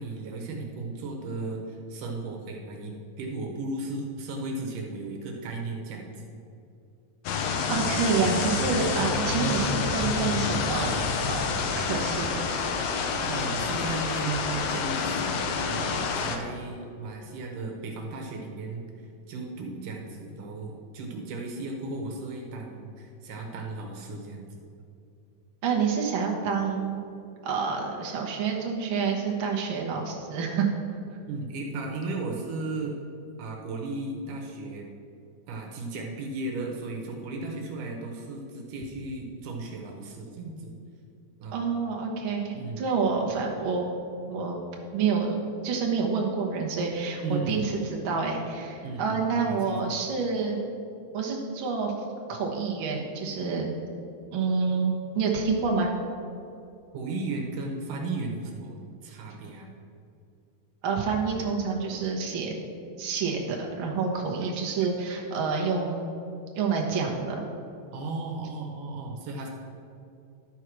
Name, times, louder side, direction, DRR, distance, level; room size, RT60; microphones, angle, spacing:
voice 1, 0.0-6.3 13.3-18.8 19.3-24.5 31.3-33.0 33.4-34.9 35.5-40.7 41.4-41.6 42.5-42.8 47.2-47.7 48.8-49.6 56.9-58.8 59.0-59.7 67.9-69.5, right 3 dB, 70° right, 1 dB, 2.3 m, -35 dB
sound 1, 7.3-16.4, left 5 dB, 80° left, 1.6 m, -28 dB
voice 2, 7.7-11.0 11.3-12.6 25.6-27.0 27.4-30.7 41.5-43.8 44.3-44.6 44.9-45.3 45.6-50.6 51.1-51.9 52.3-53.7 54.3-55.9 60.8-62.5 63.0-66.1 66.5-67.5, right 5 dB, 90° right, -1 dB, 1.1 m, -28 dB
11.5 x 4.7 x 6.0 m, 2.6 s
omnidirectional pair, 4.0 m